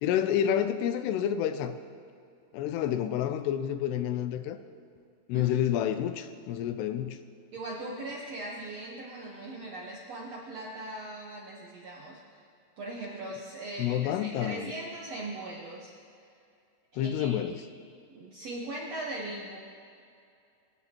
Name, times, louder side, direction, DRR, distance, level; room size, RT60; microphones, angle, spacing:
voice 1, 0.0-1.7 2.5-4.6 5.3-7.2 13.8-14.7 17.0-17.6, left 10 dB, 85° left, 10 dB, 2.8 m, -29 dB
voice 2, 7.5-12.4 12.8-15.9 16.9-17.4 18.1-19.6, right 2 dB, 65° right, -4 dB, 1.6 m, -40 dB
24.5 x 11.0 x 3.0 m, 2.5 s
omnidirectional pair, 4.7 m